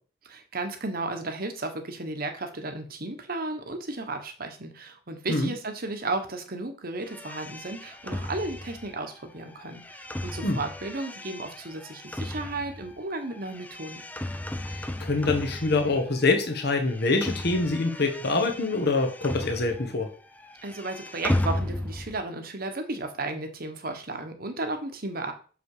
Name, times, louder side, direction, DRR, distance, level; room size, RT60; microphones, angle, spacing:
voice 1, 0.2-14.0 20.6-25.3, right 2 dB, 50° right, 6 dB, 1.4 m, -34 dB
sound 1, 7.1-16.3 16.6-20.1 20.3-22.2, left 1 dB, 10° left, 0.5 m, -35 dB
voice 2, 14.6-20.1, left 3 dB, 60° left, 4 dB, 1.4 m, -25 dB
6.7 x 5.2 x 5.0 m, 0.39 s
head